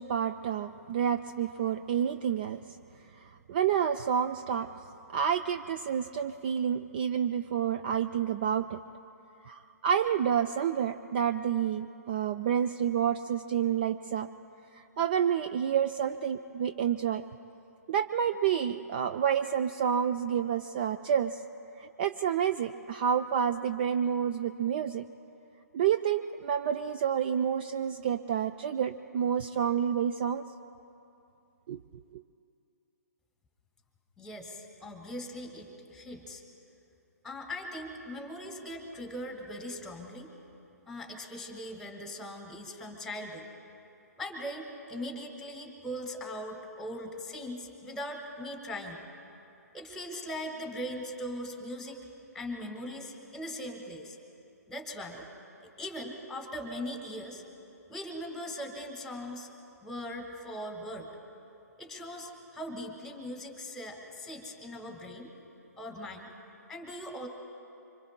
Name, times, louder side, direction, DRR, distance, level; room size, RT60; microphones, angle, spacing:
voice 1, 0.0-2.6 3.5-4.7 5.1-8.8 9.4-14.3 14.8-17.2 17.9-21.4 21.8-25.1 25.7-30.4 31.7-31.8, right 8 dB, 35° right, 9 dB, 0.4 m, -29 dB
voice 2, 34.2-36.4 37.2-40.3 40.9-43.5 44.2-49.0 49.7-52.1 52.3-54.2 54.7-55.3 55.8-57.4 57.9-59.5 59.8-61.1 61.8-65.3 65.8-66.3 66.7-67.3, equal, 5° left, 4 dB, 1.8 m, -40 dB
25.5 x 25.5 x 2.2 m, 2.8 s
figure-of-eight pair, 130°, 9 cm